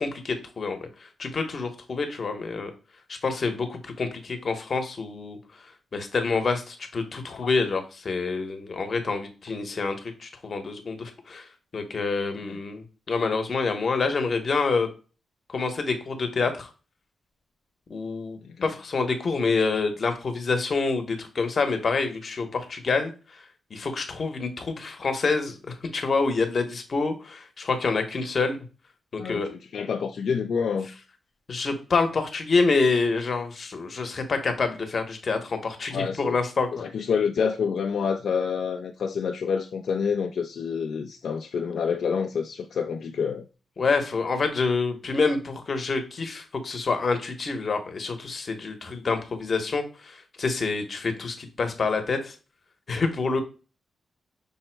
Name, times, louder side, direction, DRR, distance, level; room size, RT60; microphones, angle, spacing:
voice 1, 0.0-2.7 3.1-5.4 5.9-11.5 11.7-14.9 15.5-16.7 17.9-23.4 23.7-28.6 29.1-29.5 31.5-36.8 43.8-52.3 52.9-53.4, left 4 dB, 40° left, 0.8 m, -27 dB
voice 2, 29.2-30.9 35.9-36.4 36.8-43.4, left 6 dB, 65° left, 0.3 m, -28 dB
5.3 x 2.0 x 4.4 m
wide cardioid pair, 135°, 0 cm